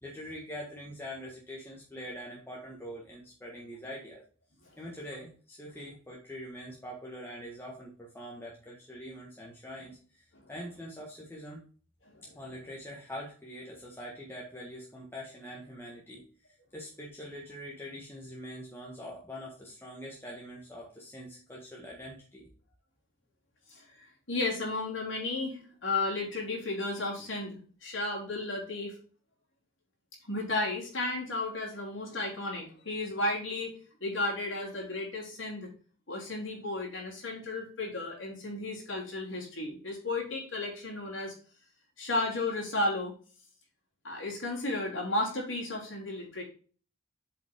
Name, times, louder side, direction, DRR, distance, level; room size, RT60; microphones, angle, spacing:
voice 1, 0.0-4.2 4.8-11.6 12.3-16.2 16.5-22.5, equal, 10° left, -3 dB, 1.5 m, -44 dB
voice 2, 23.7-29.0 30.3-33.7 34.0-35.7 36.1-41.3 42.0-43.1 44.0-46.4, left 2 dB, 80° left, -3 dB, 3.5 m, -33 dB
7.8 x 5.3 x 3.6 m, 0.40 s
head